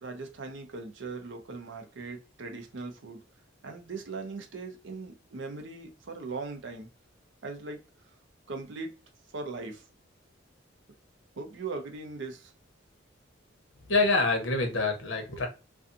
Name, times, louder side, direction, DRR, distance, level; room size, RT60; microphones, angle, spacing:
voice 1, 0.0-3.2 3.6-6.9 7.4-7.8 8.5-8.9 9.3-9.8 11.4-12.5, right 3 dB, 70° right, 0.6 m, -39 dB
voice 2, 13.9-15.5, left 3 dB, 75° left, 0.8 m, -26 dB
2.5 x 2.3 x 2.5 m
head